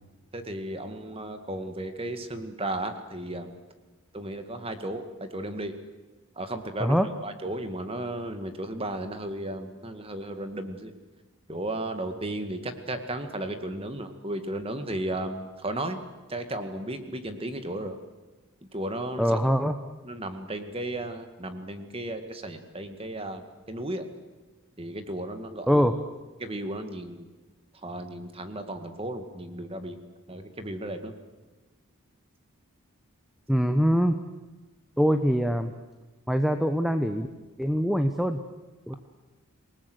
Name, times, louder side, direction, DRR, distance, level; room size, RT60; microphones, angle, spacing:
voice 1, 0.3-3.5 4.1-5.8 6.4-7.0 7.2-10.9 11.5-16.0 16.3-18.0 18.7-19.4 20.0-24.1 24.8-25.8 26.4-27.3 27.8-30.0 30.3-31.1, right 1 dB, 25° right, 8 dB, 2.0 m, -34 dB
voice 2, 19.2-19.8 25.7-25.9 33.5-34.2 35.0-35.7 36.3-37.3 37.6-38.4 38.9-39.0, equal, ahead, 8 dB, 0.9 m, -23 dB
27.0 x 19.0 x 8.1 m, 1.2 s
head